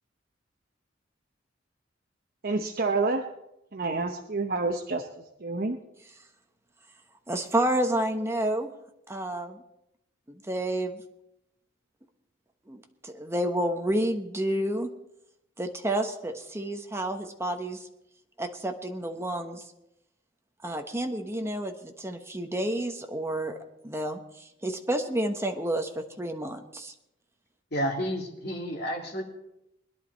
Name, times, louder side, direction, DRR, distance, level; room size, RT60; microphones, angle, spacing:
voice 1, 2.4-3.2 3.7-5.8, right 3 dB, 50° right, 3 dB, 0.9 m, -28 dB
voice 2, 7.3-8.7 9.1-9.6 10.3-11.0 12.7-14.9 15.6-17.9 18.4-19.6 20.6-23.6 23.8-26.9, right 1 dB, 15° right, 4 dB, 1.1 m, -30 dB
voice 3, 27.7-29.2, equal, 55° left, 0 dB, 2.6 m, -30 dB
21.0 x 11.0 x 4.1 m, 0.85 s
head